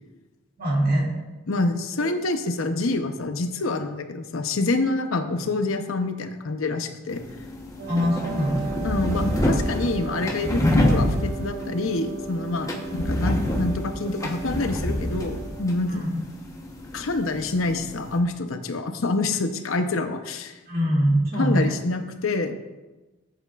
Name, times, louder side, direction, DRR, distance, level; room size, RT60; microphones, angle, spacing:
voice 1, 0.6-1.1 2.0-2.1 7.8-8.8 9.1-9.4 12.6-12.7 15.9-16.2 20.7-21.7, equal, 45° right, -3 dB, 2.4 m, -24 dB
voice 2, 1.5-7.2 8.8-16.0 16.9-20.6 21.4-22.6, left 2 dB, 70° left, 7 dB, 0.7 m, -27 dB
sound 1, 7.1-18.2, left 1 dB, 15° left, 0.9 m, -27 dB
Wind instrument woodwind instrument, 7.8-15.9, right 6 dB, 70° right, 1.0 m, -37 dB
14.0 x 7.8 x 2.4 m, 1.1 s
head